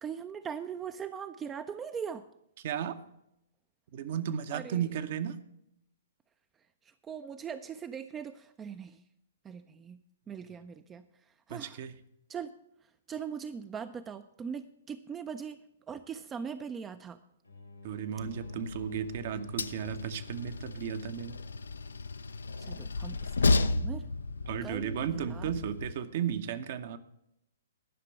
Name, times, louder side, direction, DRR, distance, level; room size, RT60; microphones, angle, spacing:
voice 1, 0.0-2.3 4.5-4.8 7.0-9.0 9.4-10.0 10.3-11.1 11.5-11.8 12.3-12.5 13.1-15.6 15.9-17.2 22.6-24.1 24.6-25.5, right 7 dB, 15° right, 10 dB, 0.4 m, -40 dB
voice 2, 2.6-3.0 3.9-5.4 11.5-11.9 17.8-21.4 24.5-27.0, right 9 dB, 50° right, 10 dB, 0.8 m, -34 dB
sound 1, 17.4-22.8, left 3 dB, 85° left, 2.4 m, -50 dB
Train, 18.2-25.9, left 3 dB, 70° left, 0.4 m, -33 dB
11.0 x 6.0 x 8.1 m, 0.79 s
figure-of-eight pair, 115°, 0 cm